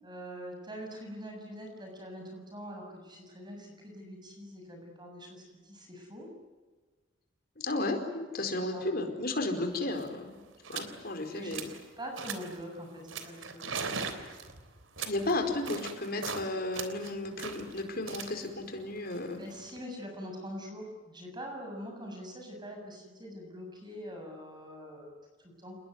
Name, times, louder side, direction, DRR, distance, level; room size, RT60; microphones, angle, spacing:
voice 1, 0.0-6.3 8.7-8.8 11.3-13.9 19.4-25.1 25.4-25.8, equal, 20° right, 2 dB, 7.1 m, -44 dB
voice 2, 7.6-10.3 10.7-11.7 13.9-14.0 15.0-19.4, left 2 dB, 50° left, 5 dB, 4.7 m, -33 dB
sound 1, 9.6-9.7 9.9-10.2 10.6-11.0 11.3-11.8 12.2-12.6 13.1-16.5 16.7-19.8, right 5 dB, 85° right, 3.4 m, -40 dB
29.0 x 21.0 x 9.6 m, 1.3 s
head